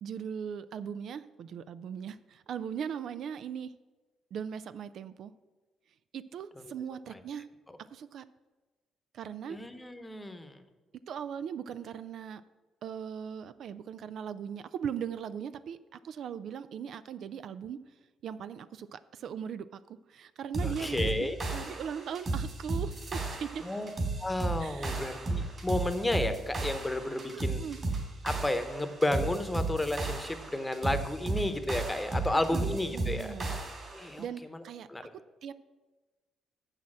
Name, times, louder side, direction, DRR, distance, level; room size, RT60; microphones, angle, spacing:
voice 1, 0.0-3.7 4.3-5.3 6.1-7.5 7.8-8.2 9.1-9.6 11.1-12.4 12.8-17.8 18.2-23.7 24.6-25.0 27.3-27.8 32.5-33.5 34.2-34.9 35.4-35.5, right 8 dB, 70° right, 14 dB, 0.3 m, -39 dB
voice 2, 9.5-10.6 20.6-21.4 23.6-23.9 24.2-27.6 28.2-33.6 33.9-34.2 34.9-35.0, left 1 dB, 10° left, 9 dB, 0.9 m, -32 dB
sound 1, 20.5-34.1, right 2 dB, 40° right, 2.5 m, -34 dB
7.1 x 6.4 x 7.4 m, 1.2 s
cardioid pair, 90°, 0 cm